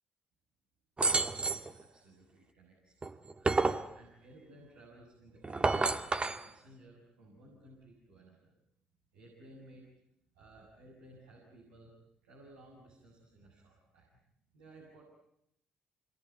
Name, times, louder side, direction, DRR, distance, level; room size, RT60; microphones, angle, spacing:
sound 1, 1.0-1.7 3.0-3.9 5.4-6.4, right 3 dB, 30° right, 1.7 m, -29 dB
voice 1, 1.2-2.9 3.4-8.5 9.1-9.8 10.3-11.9 12.2-14.2 14.5-15.0, right 1 dB, 90° right, -5 dB, 7.5 m, -57 dB
27.0 x 22.5 x 9.6 m, 0.80 s
hypercardioid pair, 50°, 4 cm